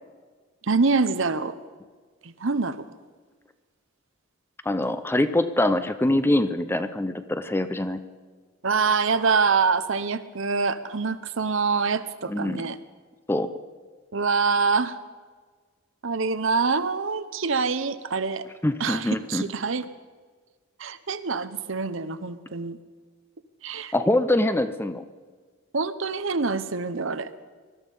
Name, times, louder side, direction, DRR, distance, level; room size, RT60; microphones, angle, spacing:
voice 1, 0.6-1.5 2.2-2.8 8.6-12.8 14.1-15.0 16.0-18.4 18.8-19.9 20.8-22.8 23.6-23.9 25.7-27.3, right 4 dB, 65° right, 12 dB, 0.8 m, -25 dB
voice 2, 4.7-8.0 12.3-12.6 13.3-13.5 18.6-19.5 23.9-25.0, left 1 dB, 10° left, 11 dB, 0.6 m, -24 dB
20.5 x 13.0 x 5.5 m, 1.5 s
head